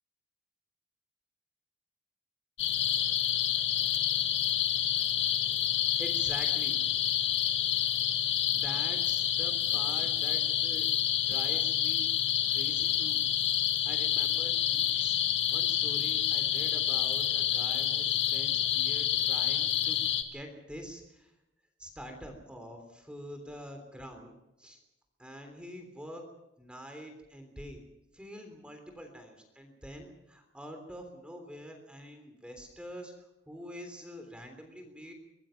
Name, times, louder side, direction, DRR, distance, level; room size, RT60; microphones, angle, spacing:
sound 1, 2.6-20.2, left 10 dB, 85° left, 1.8 m, -28 dB
voice 1, 6.0-6.8 8.5-10.9 11.3-12.1 12.5-13.2 13.9-15.1 15.5-20.0 20.3-21.3 21.8-24.3 24.6-24.8 25.2-26.2 26.6-27.8 28.1-33.1 33.5-35.1, equal, 5° right, 5 dB, 3.5 m, -45 dB
24.5 x 19.5 x 5.9 m, 0.90 s
head